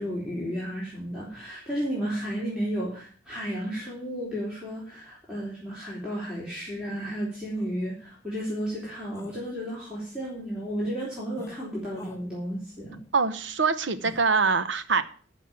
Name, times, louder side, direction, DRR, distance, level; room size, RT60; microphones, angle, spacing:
voice 1, 0.0-13.0, equal, 5° right, -7 dB, 3.9 m, -33 dB
sound 1, 7.6-7.7 8.4-8.5 9.1-9.4 11.4-11.6 11.9-12.2 14.0-14.2, equal, 15° left, 1.3 m, -43 dB
voice 2, 13.1-15.0, right 4 dB, 75° right, 12 dB, 1.0 m, -24 dB
14.0 x 5.5 x 7.4 m, 0.43 s
head